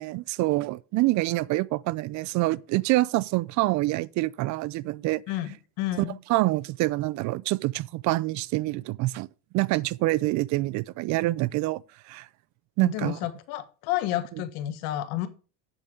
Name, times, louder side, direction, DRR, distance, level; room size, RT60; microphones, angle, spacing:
voice 1, 0.0-5.2 6.3-9.3 9.5-11.8 12.1-12.3 12.8-13.2, right 19 dB, 50° right, 0.4 m, -26 dB
voice 2, 5.3-6.2 12.8-15.3, left 14 dB, 70° left, 1.5 m, -31 dB
8.1 x 7.1 x 4.8 m
supercardioid pair, 125°, 38 cm